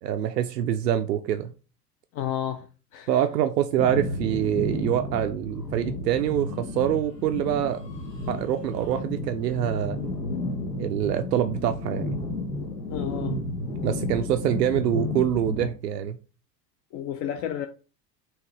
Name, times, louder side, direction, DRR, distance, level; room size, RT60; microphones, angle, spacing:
voice 1, 0.0-1.5 3.1-7.8 8.3-10.0 10.8-12.2 13.8-16.2, right 10 dB, 80° right, 0.5 m, -25 dB
voice 2, 2.1-3.2 12.9-13.4 16.9-17.7, left 10 dB, 35° left, 0.4 m, -32 dB
sound 1, 3.8-15.7, left 2 dB, 85° left, 1.0 m, -32 dB
4.7 x 3.1 x 3.1 m
figure-of-eight pair, 80°, 48 cm